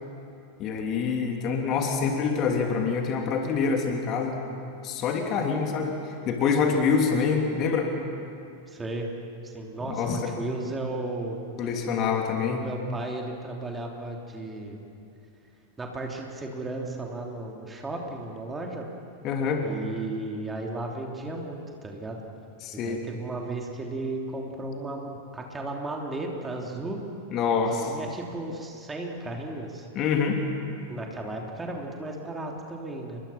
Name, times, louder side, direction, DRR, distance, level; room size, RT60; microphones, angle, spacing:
voice 1, 0.6-4.4 4.8-5.9 6.2-7.9 9.8-10.3 11.6-12.7 19.2-19.7 22.6-23.0 27.3-27.9 29.9-30.4, left 5 dB, 35° left, 2 dB, 3.0 m, -26 dB
voice 2, 8.7-9.1 9.4-11.4 12.5-14.8 15.8-18.9 19.6-22.2 22.7-27.0 27.7-29.9 30.9-33.2, right 2 dB, 15° right, 0 dB, 3.3 m, -35 dB
29.0 x 23.0 x 5.9 m, 2.8 s
figure-of-eight pair, 90°, 0 cm